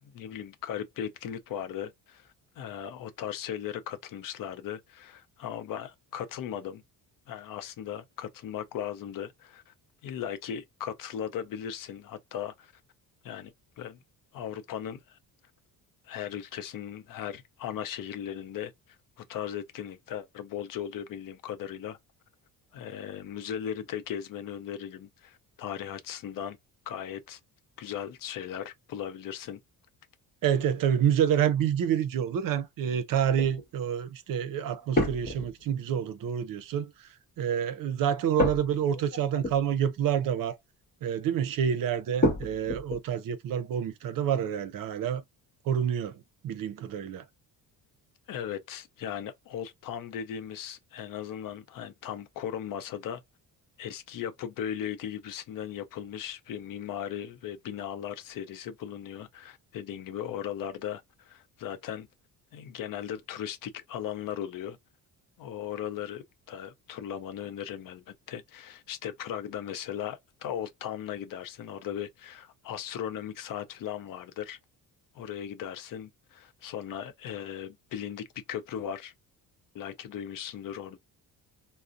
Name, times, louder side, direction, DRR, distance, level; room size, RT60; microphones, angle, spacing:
voice 1, 0.1-6.8 7.3-9.7 10.0-12.7 13.2-14.0 14.3-15.2 16.0-18.7 19.3-22.0 22.7-26.6 26.9-27.4 27.8-29.6 48.3-53.2 53.8-62.1 62.5-64.8 65.4-74.6 75.1-79.1 79.7-81.0, left 9 dB, 60° left, 0.6 m, -37 dB
voice 2, 30.4-36.9 37.4-40.6 41.0-45.2 45.7-47.2, right 9 dB, 60° right, 0.6 m, -28 dB
sound 1, 33.3-33.6 34.9-35.8 38.4-39.9 40.2-40.4 42.2-43.0, left 1 dB, 25° left, 1.0 m, -30 dB
2.5 x 2.0 x 2.4 m
cardioid pair, 140°, 38 cm